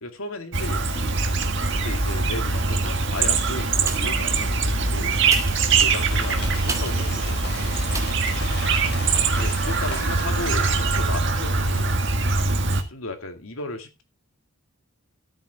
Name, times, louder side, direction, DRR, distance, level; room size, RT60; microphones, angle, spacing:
voice 1, 0.0-1.2 1.7-5.2 5.8-7.6 9.3-12.0 12.9-14.0, left 2 dB, 75° left, 6 dB, 2.2 m, -35 dB
Chirp tweet, 0.5-12.8, right 3 dB, 55° right, 1.7 m, -23 dB
sound 1, 3.8-4.3 5.2-7.1 7.9-8.3 8.8-8.9, right 3 dB, 15° right, 1.4 m, -35 dB
sound 2, 5.9-11.0, left 3 dB, 45° left, 5.3 m, -37 dB
13.5 x 8.6 x 3.5 m, 0.26 s
head